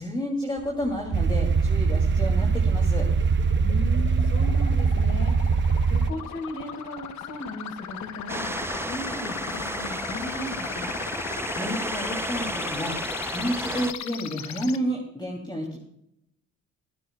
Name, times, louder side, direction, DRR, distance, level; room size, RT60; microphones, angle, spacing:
voice 1, 0.0-3.1 11.5-13.0 13.3-15.8, equal, 15° left, -2 dB, 2.8 m, -30 dB
sound 1, 0.6-14.8, left 9 dB, 65° left, 1.1 m, -38 dB
sound 2, 1.1-6.1, right 5 dB, 40° right, 0.8 m, -22 dB
voice 2, 3.6-5.3 5.9-8.5 8.9-10.9, left 1 dB, 45° left, 4 dB, 4.1 m, -36 dB
sound 3, 8.3-13.9, right 2 dB, 10° right, 0.6 m, -33 dB
23.5 x 12.5 x 2.3 m, 0.80 s
cardioid pair, 90°, 30 cm